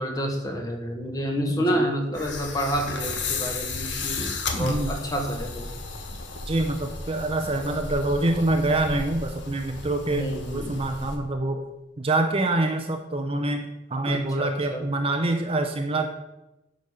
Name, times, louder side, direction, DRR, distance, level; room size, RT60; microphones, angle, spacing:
voice 1, 0.0-5.7 10.1-10.7 14.0-14.9, equal, 20° left, 2 dB, 1.4 m, -29 dB
voice 2, 1.5-1.9 4.5-4.9 6.5-11.6 12.0-16.1, right 2 dB, 30° right, 5 dB, 0.6 m, -26 dB
sound 1, 2.1-11.2, left 4 dB, 60° left, 1.4 m, -34 dB
9.7 x 5.3 x 6.5 m, 0.98 s
head